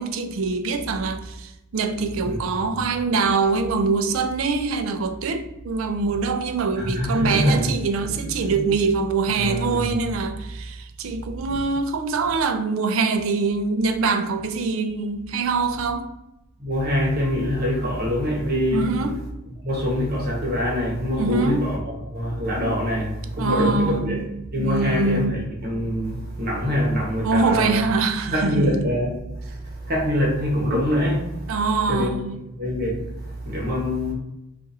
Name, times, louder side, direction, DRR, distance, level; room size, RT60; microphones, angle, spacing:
voice 1, 0.0-16.1 18.7-19.2 21.2-21.7 23.4-24.3 24.6-25.3 27.2-28.8 31.5-32.4, right 4 dB, 75° right, 0.4 m, -24 dB
voice 2, 6.7-7.8 8.0-8.8 9.3-10.0 16.6-18.9 19.6-24.3 24.5-27.9 28.3-29.2 29.5-31.3 31.9-32.1 32.6-34.1, equal, 50° right, 1.0 m, -24 dB
2.5 x 2.5 x 4.0 m
head